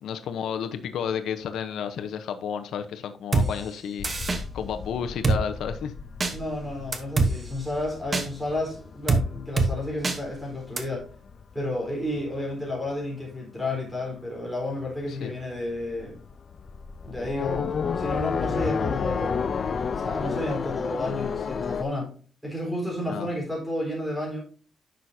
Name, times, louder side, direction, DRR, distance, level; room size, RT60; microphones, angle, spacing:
voice 1, 0.0-4.1 4.5-5.9 15.1-15.3 23.1-23.3, left 7 dB, 90° left, 8 dB, 0.8 m, -31 dB
Drum kit, 3.3-3.5 4.0-4.4 5.2-5.4 6.2-6.3 6.9-7.3 8.1-8.3 9.1-9.2 9.6-9.7 10.0-10.2 10.8-10.9, right 3 dB, 25° right, 1.0 m, -22 dB
sound 1, 4.0-12.9 13.2-14.0 14.3-14.4 14.7-21.8, left 6 dB, 40° left, 0.4 m, -32 dB
voice 2, 6.3-11.1 11.5-16.2 17.0-19.4 19.8-22.2 22.4-24.4, left 1 dB, ahead, -2 dB, 3.9 m, -31 dB
10.0 x 6.3 x 2.7 m, 0.40 s
wide cardioid pair, 180°, 0 cm